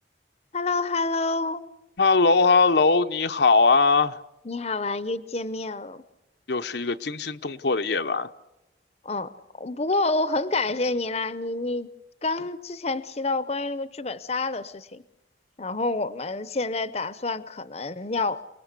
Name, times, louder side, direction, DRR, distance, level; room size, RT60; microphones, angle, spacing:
voice 1, 0.5-1.7 4.4-6.0 9.0-11.9 12.2-15.0 15.6-18.4, left 3 dB, 35° left, 0.8 m, -28 dB
voice 2, 2.0-4.2 6.5-8.3, left 4 dB, 65° left, 0.8 m, -20 dB
29.0 x 19.5 x 8.3 m
head